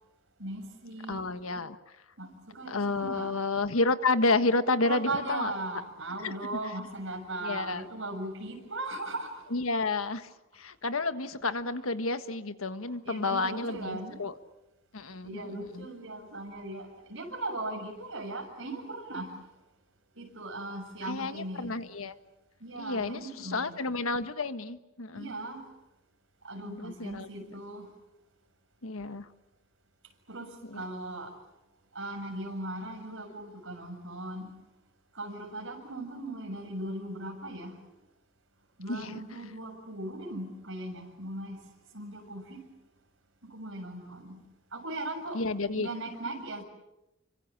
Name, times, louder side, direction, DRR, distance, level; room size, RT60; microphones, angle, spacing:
voice 1, 0.4-1.2 2.2-3.3 4.8-9.4 13.0-14.2 15.2-19.4 20.1-21.8 22.6-23.8 25.1-25.6 26.4-27.9 30.3-31.3 31.9-34.5 35.1-37.8 38.8-41.6 41.9-42.6 43.4-44.4 44.7-45.4 45.7-46.6, right 2 dB, 65° right, 6.8 m, -38 dB
voice 2, 1.1-1.8 2.7-5.5 6.2-6.3 7.4-7.9 9.5-10.3 10.5-14.3 14.9-15.9 21.0-22.1 22.8-25.3 26.6-27.5 28.8-29.3 30.7-30.8 38.9-39.2 45.3-46.0, left 3 dB, 80° left, 1.5 m, -30 dB
29.5 x 25.0 x 7.3 m
head